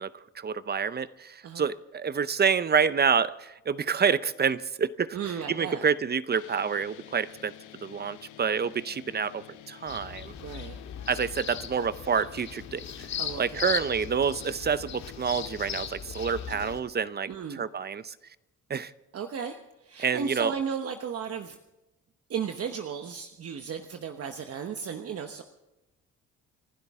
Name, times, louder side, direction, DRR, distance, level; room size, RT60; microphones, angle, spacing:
voice 1, 0.0-5.2 5.5-7.5 7.8-10.3 11.1-12.8 13.4-18.2 18.7-18.9 20.0-20.5, right 6 dB, 35° right, 0.6 m, -28 dB
voice 2, 5.1-5.9 10.4-10.8 13.2-13.7 17.3-17.6 19.1-21.6 22.3-25.4, right 7 dB, 50° right, 1.1 m, -35 dB
sound 1, 6.3-15.8, left 12 dB, 85° left, 1.0 m, -50 dB
sound 2, 9.9-16.8, left 8 dB, 65° left, 1.9 m, -38 dB
30.0 x 12.0 x 3.6 m
cardioid pair, 90°, 30 cm